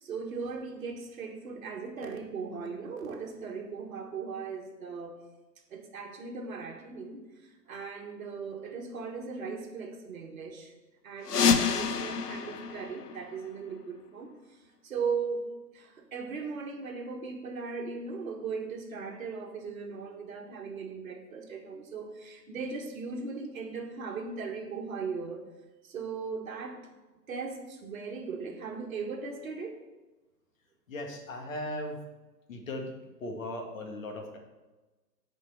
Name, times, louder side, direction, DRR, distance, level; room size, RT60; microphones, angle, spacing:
voice 1, 0.0-5.2 5.7-10.7 11.0-14.3 14.8-15.5 15.7-25.4 25.8-26.8 27.3-29.8, right 5 dB, 55° right, 2 dB, 1.7 m, -38 dB
sound 1, 11.2-13.9, left 6 dB, 65° left, 0.9 m, -28 dB
voice 2, 30.9-32.0 32.5-34.4, left 1 dB, 50° left, 3 dB, 1.9 m, -38 dB
7.4 x 5.1 x 7.0 m, 1.1 s
hypercardioid pair, 145°, 50 cm